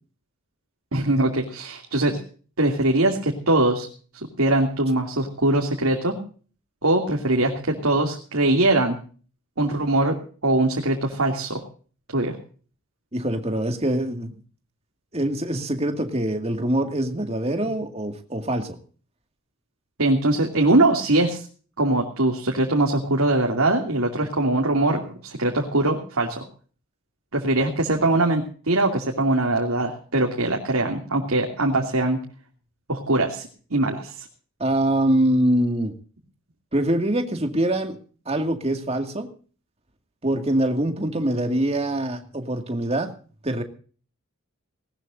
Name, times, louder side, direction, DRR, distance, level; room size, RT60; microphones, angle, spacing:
voice 1, 0.9-2.2 2.6-3.9 4.4-6.2 6.8-9.0 9.6-10.2 10.4-11.6 12.1-12.4 20.0-21.5 21.8-26.5 27.3-32.2 32.9-34.3, right 2 dB, 90° right, 1 dB, 2.8 m, -22 dB
voice 2, 13.1-14.3 15.1-18.8 34.6-35.9 36.7-38.0 38.3-39.3 40.2-43.1 43.4-43.6, right 1 dB, 30° right, 5 dB, 2.1 m, -24 dB
19.5 x 19.0 x 2.7 m, 0.41 s
head